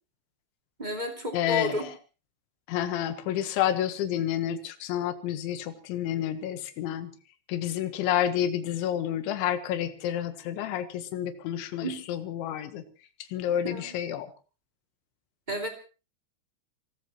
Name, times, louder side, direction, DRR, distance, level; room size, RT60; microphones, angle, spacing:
voice 1, 0.8-1.9 11.8-12.0 13.6-14.0 15.5-15.7, equal, 25° right, 2 dB, 0.9 m, -32 dB
voice 2, 1.3-1.9 2.7-7.1 7.5-12.8 13.3-14.3, left 11 dB, 70° left, 9 dB, 3.5 m, -29 dB
27.5 x 17.0 x 3.0 m, 0.34 s
omnidirectional pair, 5.9 m